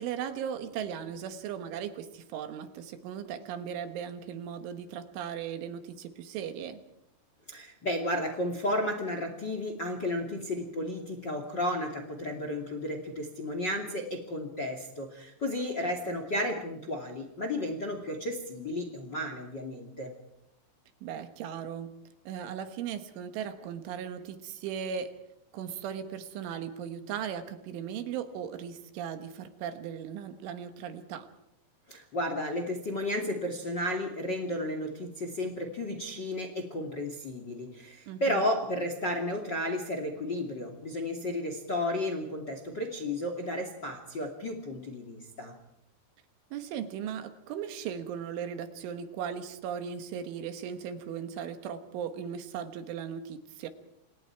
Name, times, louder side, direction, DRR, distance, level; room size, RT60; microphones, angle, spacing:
voice 1, 0.0-6.8 15.8-15.9 21.0-22.0 22.3-25.2 25.5-31.3 38.1-38.5 46.5-53.7, right 8 dB, 75° right, 9 dB, 3.7 m, -37 dB
voice 2, 7.5-20.1 31.9-45.5, left 1 dB, 35° left, 5 dB, 1.9 m, -33 dB
28.5 x 28.0 x 4.7 m, 0.78 s
omnidirectional pair, 5.8 m